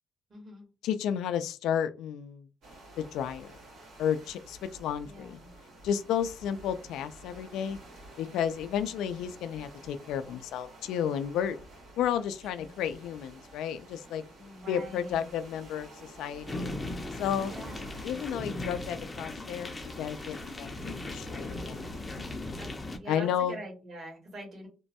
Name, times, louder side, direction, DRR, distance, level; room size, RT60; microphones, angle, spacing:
voice 1, 0.3-0.7 5.0-5.5 12.1-12.2 12.6-12.8 14.4-15.3 17.4-17.8 22.6-24.7, right 1 dB, 50° right, 1.7 m, -44 dB
voice 2, 0.8-2.5 3.0-3.5 4.0-5.4 5.8-7.8 8.2-11.6 12.0-14.2 14.7-16.7 17.2-17.5 18.0-21.9 23.1-23.6, left 9 dB, 85° left, 0.3 m, -32 dB
sound 1, 2.6-22.4, right 1 dB, 75° right, 1.7 m, -51 dB
sound 2, 16.5-23.0, left 2 dB, 20° left, 0.6 m, -38 dB
3.0 x 2.2 x 2.8 m
cardioid pair, 90°, 0 cm